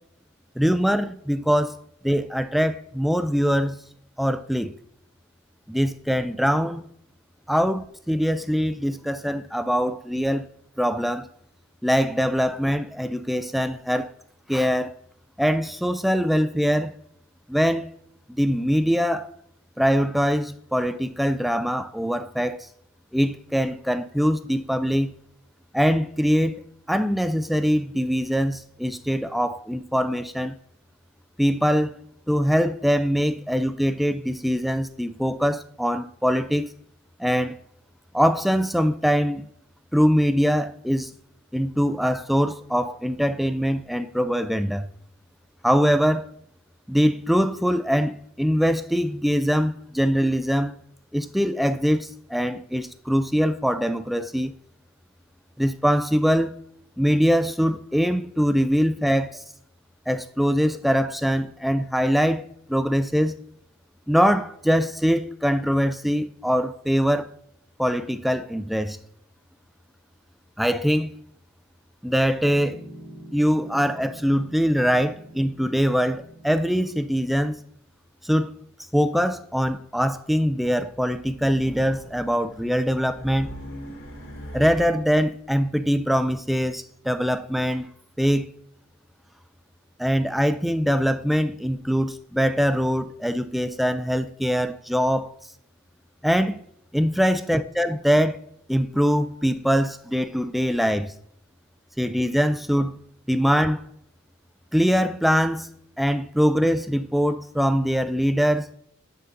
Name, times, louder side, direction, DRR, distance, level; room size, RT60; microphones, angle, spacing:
voice 1, 0.6-1.8 2.0-3.8 4.2-4.7 5.7-6.9 7.5-10.5 10.8-11.3 11.8-14.1 14.5-14.9 15.4-16.9 17.5-17.9 18.3-19.3 19.8-22.7 23.1-25.1 25.7-26.6 26.9-30.5 31.4-32.0 32.3-36.7 37.2-37.6 38.1-39.4 39.9-41.1 41.5-44.9 45.6-46.3 46.9-50.8 51.1-54.5 55.6-56.5 57.0-59.4 60.1-63.3 64.1-67.3 67.8-69.0 70.6-71.2 72.0-72.8 73.3-77.6 78.2-78.5 78.9-83.5 84.5-87.9 88.2-88.5 90.0-95.3 96.2-96.6 96.9-98.4 98.7-101.1 102.0-103.0 103.3-103.8 104.7-105.7 106.0-108.7, equal, ahead, 0.3 m, -23 dB
Piano, 72.4-77.5, right 1 dB, 80° right, 2.2 m, -45 dB
Race car auto racing, 80.9-85.2, equal, 90° left, 2.5 m, -39 dB
9.5 x 3.9 x 3.8 m
head